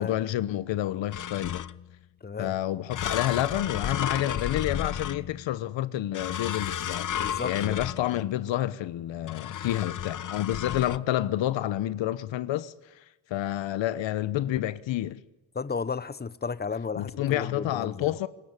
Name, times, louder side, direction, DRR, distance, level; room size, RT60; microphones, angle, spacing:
voice 1, 0.0-1.6 2.4-7.1 7.4-12.7 13.3-15.2 17.0-18.3, left 13 dB, 75° left, 1.0 m, -29 dB
sound 1, 1.1-1.9 2.9-5.6 6.1-8.4 9.3-11.0, left 9 dB, 45° left, 0.8 m, -33 dB
voice 2, 2.2-2.5 7.2-7.8 15.5-18.1, left 5 dB, 20° left, 1.0 m, -34 dB
25.0 x 20.5 x 9.7 m
supercardioid pair, 55°, 45 cm